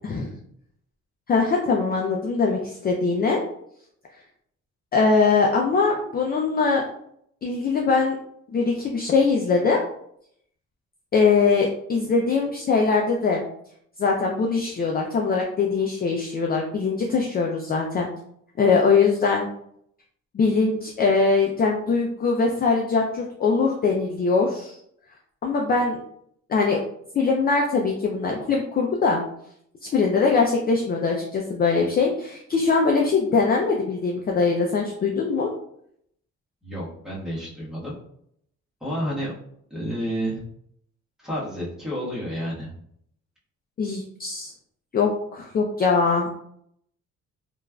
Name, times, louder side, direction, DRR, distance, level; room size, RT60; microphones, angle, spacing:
voice 1, 1.3-3.4 4.9-6.8 7.4-8.2 8.5-9.8 11.1-13.4 14.0-18.1 18.6-19.5 20.3-24.8 25.4-26.0 26.5-26.8 27.1-29.2 29.8-35.5 43.8-44.5 44.9-46.3, left 4 dB, 30° left, 0 dB, 0.4 m, -22 dB
voice 2, 36.6-38.0 38.8-39.3 39.7-40.4 41.2-42.7, equal, ahead, -7 dB, 1.3 m, -30 dB
3.0 x 2.4 x 2.3 m, 0.70 s
cardioid pair, 90°, 30 cm